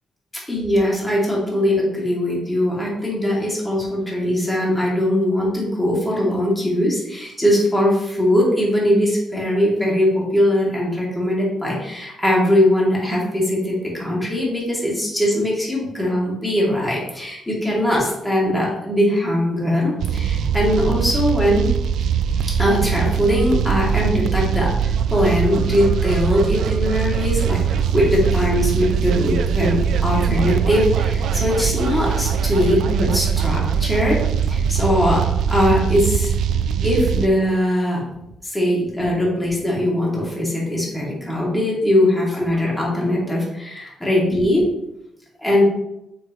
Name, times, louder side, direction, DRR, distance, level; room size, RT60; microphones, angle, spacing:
voice 1, 0.5-21.7 22.6-34.2 34.5-35.2 35.5-36.3 36.8-38.0 38.4-44.7 45.4-45.6, left 1 dB, 10° left, -5 dB, 2.4 m, -20 dB
sound 1, 20.0-37.3, right 7 dB, 75° right, 0.4 m, -21 dB
6.9 x 5.5 x 3.1 m, 0.87 s
cardioid pair, 90°, 0 cm